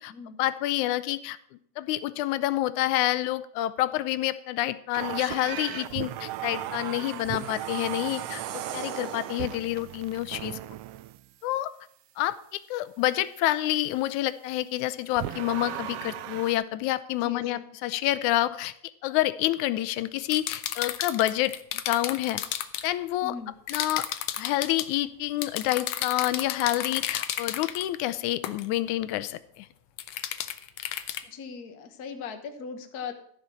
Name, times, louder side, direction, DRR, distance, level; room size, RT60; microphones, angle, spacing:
voice 1, 0.4-1.4 1.8-10.6 11.4-11.7 12.2-18.7 19.0-21.6 21.9-22.4 22.8-23.4 23.7-24.0 24.4-29.7, left 15 dB, 90° left, 14 dB, 2.1 m, -28 dB
sound 1, 4.9-11.3 15.2-16.6, right 14 dB, 85° right, 1.3 m, -37 dB
sound 2, 6.7-9.9, right 9 dB, 70° right, 1.8 m, -41 dB
voice 2, 17.2-17.6 23.2-23.6 31.2-33.1, left 5 dB, 55° left, 7 dB, 1.1 m, -39 dB
sound 3, 20.3-22.9 23.7-24.9 25.4-27.8 28.4-28.7 30.0-31.2, left 11 dB, 75° left, 1.8 m, -32 dB
14.0 x 5.8 x 7.6 m, 0.66 s
omnidirectional pair, 3.3 m